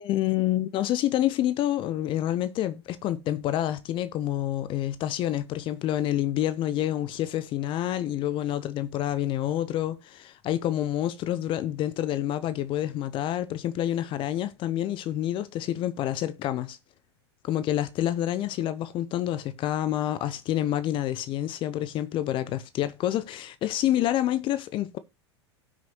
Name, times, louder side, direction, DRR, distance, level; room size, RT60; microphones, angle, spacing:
voice 1, 0.0-16.8 17.4-25.0, left 12 dB, 35° left, 0.8 m, -28 dB
17.5 x 6.2 x 3.0 m
figure-of-eight pair, 90°, 15 cm